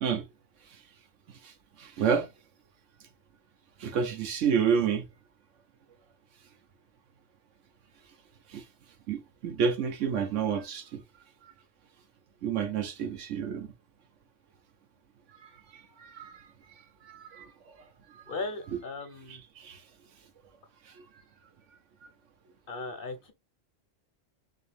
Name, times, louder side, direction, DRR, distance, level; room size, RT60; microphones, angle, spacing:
voice 1, 1.8-2.3 3.8-5.1 8.5-8.6 9.1-11.0 11.4-11.5 12.4-13.7 15.4-16.4 17.0-17.5 19.3-19.8 22.0-22.1, right 7 dB, 85° right, 1.2 m, -30 dB
voice 2, 18.3-19.4 22.7-23.3, left 3 dB, 50° left, 1.0 m, -37 dB
4.2 x 2.7 x 3.2 m
omnidirectional pair, 1.3 m